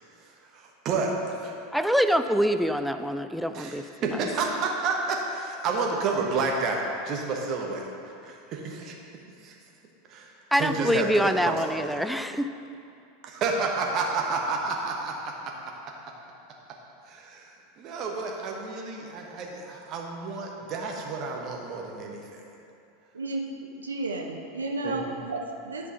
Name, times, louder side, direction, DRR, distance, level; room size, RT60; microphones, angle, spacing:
voice 1, 0.2-1.6 3.5-8.9 9.4-9.5 10.1-12.0 13.2-15.5 17.1-22.4 24.8-25.2, right 4 dB, 40° right, 0 dB, 1.3 m, -30 dB
voice 2, 1.7-3.9 10.5-12.6, equal, ahead, 9 dB, 0.4 m, -25 dB
voice 3, 23.8-25.9, right 2 dB, 80° right, 1 dB, 0.7 m, -32 dB
11.0 x 5.4 x 4.0 m, 2.6 s
figure-of-eight pair, 85°, 0 cm